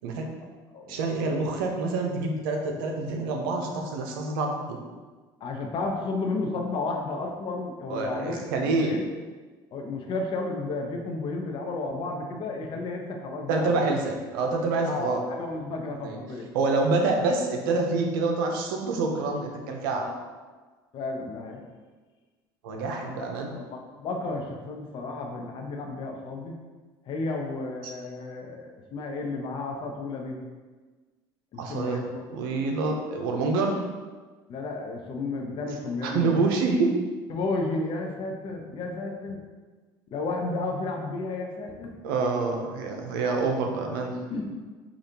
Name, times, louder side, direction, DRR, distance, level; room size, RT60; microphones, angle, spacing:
voice 1, 0.9-4.8 7.9-8.9 13.5-15.2 16.0-16.2 16.5-20.0 22.6-23.5 31.6-32.0 32.3-33.8 36.0-36.9 42.0-44.2, right 3 dB, 85° right, 2 dB, 0.6 m, -27 dB
voice 2, 5.4-8.5 8.7-9.0 9.7-13.9 14.8-16.5 19.9-20.3 20.9-21.6 23.0-26.6 27.1-30.4 31.5-32.2 34.5-36.4 37.3-39.4 40.1-42.0 44.3-44.6, left 3 dB, 50° left, 2 dB, 0.7 m, -32 dB
5.0 x 2.4 x 2.8 m, 1.3 s
supercardioid pair, 90°, 11 cm